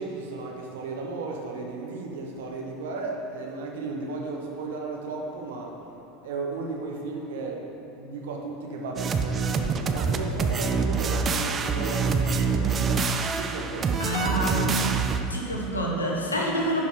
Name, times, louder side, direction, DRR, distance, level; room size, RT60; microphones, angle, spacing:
voice 1, 0.0-5.9 6.2-7.6 8.0-13.1 13.3-15.0, right 3 dB, 65° right, 0 dB, 1.2 m, -35 dB
sound 1, 9.0-15.2, right 5 dB, 30° right, 0.6 m, -26 dB
voice 2, 14.0-14.7 15.3-16.9, equal, 80° left, -2 dB, 1.3 m, -27 dB
11.0 x 5.5 x 5.0 m, 3.0 s
figure-of-eight pair, 75°, 0 cm